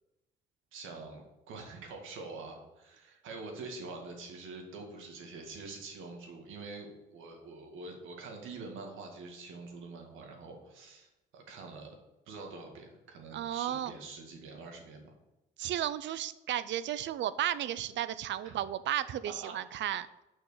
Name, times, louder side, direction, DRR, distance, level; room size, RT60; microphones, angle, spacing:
voice 1, 0.7-11.1 11.3-12.0 12.3-15.1 18.4-18.5 19.4-19.5, right 3 dB, 85° right, 2 dB, 1.9 m, -45 dB
voice 2, 13.3-13.9 15.6-20.1, right 11 dB, 70° right, 15 dB, 0.5 m, -34 dB
6.4 x 5.9 x 6.7 m, 0.98 s
cardioid pair, 90°, 20 cm